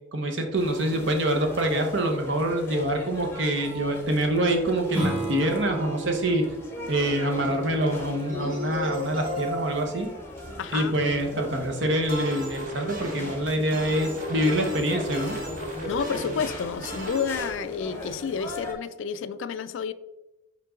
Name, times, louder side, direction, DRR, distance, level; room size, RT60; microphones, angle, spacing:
voice 1, 0.1-6.5 6.9-10.1 10.7-15.4, right 1 dB, 60° right, 4 dB, 1.0 m, -25 dB
sound 1, 0.5-18.7, left 1 dB, 10° left, 0.8 m, -40 dB
Strum, 4.9-10.1, right 3 dB, 10° right, 2.2 m, -35 dB
sound 2, 6.8-17.5, equal, 40° right, 1.2 m, -35 dB
voice 2, 10.6-10.9 15.8-19.9, left 6 dB, 65° left, 14 dB, 0.3 m, -30 dB
5.5 x 5.3 x 3.7 m, 1.0 s
head